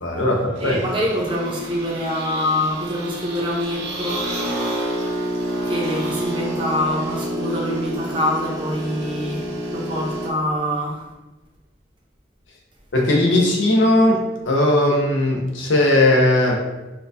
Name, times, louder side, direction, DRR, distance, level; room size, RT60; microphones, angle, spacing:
voice 1, 0.0-0.8 12.9-16.6, left 1 dB, 85° left, -1 dB, 0.7 m, -18 dB
Brewing Espresso, 0.5-10.3, right 1 dB, 65° right, 0.8 m, -29 dB
voice 2, 0.6-4.3 5.6-11.0, left 1 dB, 25° right, -4 dB, 0.7 m, -25 dB
4.4 x 2.3 x 2.7 m, 1.1 s
head